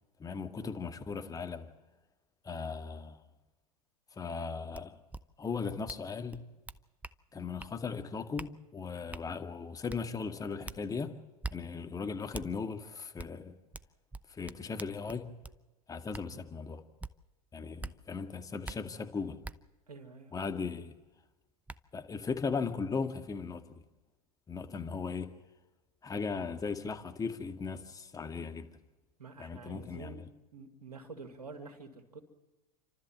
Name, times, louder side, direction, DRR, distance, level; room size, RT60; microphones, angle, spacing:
voice 1, 0.2-1.7 2.4-3.2 4.2-5.0 5.4-6.5 7.3-11.2 11.5-13.5 14.3-15.4 15.9-16.8 17.5-19.4 20.3-20.9 21.9-23.8 24.5-25.3 26.0-28.7 29.4-30.2, left 5 dB, 20° left, 2.0 m, -37 dB
sound 1, 4.7-4.8 5.1-5.2 5.9-6.0 6.3-7.2 7.6-7.7 8.4-8.5 9.1-9.3 9.9-10.0 10.7-10.8 11.4-11.6 12.3-12.5 13.2-13.3 13.7-15.6 16.1-16.3 17.0-17.1 17.8-17.9 18.6-18.8 19.4-19.6 21.1-21.2 21.7-21.8, right 3 dB, 10° right, 0.7 m, -42 dB
voice 2, 19.9-20.3 24.9-25.0 29.2-30.3 30.5-32.2, right 4 dB, 90° right, 2.7 m, -48 dB
30.0 x 13.0 x 7.6 m
hypercardioid pair, 90°, 19 cm